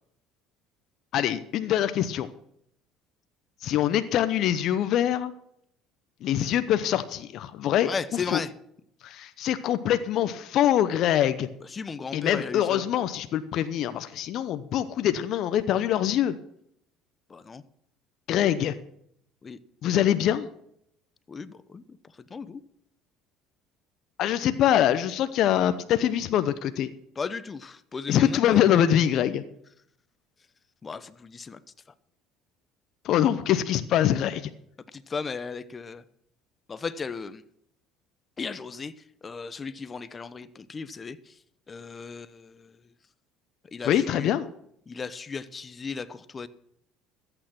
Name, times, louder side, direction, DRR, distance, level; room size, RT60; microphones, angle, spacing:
voice 1, 1.1-2.3 3.6-5.3 6.2-8.4 9.0-11.5 12.1-16.3 18.3-18.8 19.8-20.5 24.2-26.9 28.1-29.4 33.0-34.5 43.8-44.5, left 11 dB, 60° left, 11 dB, 0.7 m, -24 dB
voice 2, 7.8-8.5 11.6-12.8 17.3-17.6 19.4-19.6 21.3-22.0 22.3-22.6 27.2-28.4 30.8-31.6 34.9-36.0 36.7-37.4 38.4-38.9 39.2-41.3 41.7-42.7 43.7-44.3 44.9-46.5, left 5 dB, 30° left, 15 dB, 0.9 m, -36 dB
13.5 x 8.9 x 6.0 m, 0.73 s
supercardioid pair, 85°, 0 cm